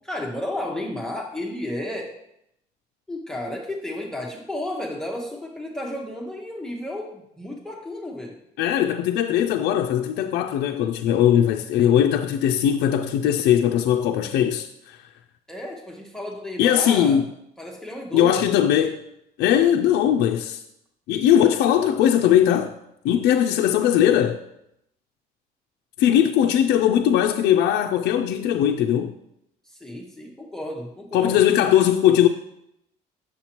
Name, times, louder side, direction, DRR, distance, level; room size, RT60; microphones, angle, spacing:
voice 1, 0.0-2.2 3.1-8.4 15.5-17.2 17.6-18.5 29.6-31.4, left 1 dB, 5° left, 0.7 m, -33 dB
voice 2, 8.6-15.0 16.6-17.2 18.1-19.0 19.4-20.6 21.1-22.8 23.0-24.4 26.0-29.1 31.1-32.3, left 10 dB, 80° left, 0.4 m, -19 dB
7.0 x 6.6 x 2.9 m
cardioid pair, 110°, 17 cm